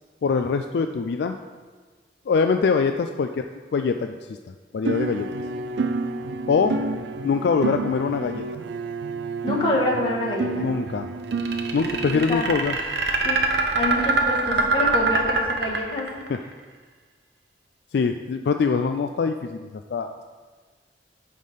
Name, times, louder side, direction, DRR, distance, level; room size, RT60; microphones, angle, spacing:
voice 1, 0.2-1.4 2.3-3.5 3.7-4.4 4.7-5.3 6.5-6.8 7.2-8.4 10.5-11.1 11.7-12.7 16.3-16.4 17.9-20.2, left 5 dB, 65° left, 6 dB, 0.3 m, -23 dB
sound 1, 4.8-12.2, right 3 dB, 80° right, 0.4 m, -29 dB
voice 2, 9.4-10.7 12.1-12.5 13.2-13.4 13.7-16.1, left 2 dB, 30° left, -4 dB, 1.6 m, -26 dB
sound 2, 11.3-16.4, right 3 dB, 65° right, 0.9 m, -23 dB
9.3 x 3.7 x 6.4 m, 1.4 s
head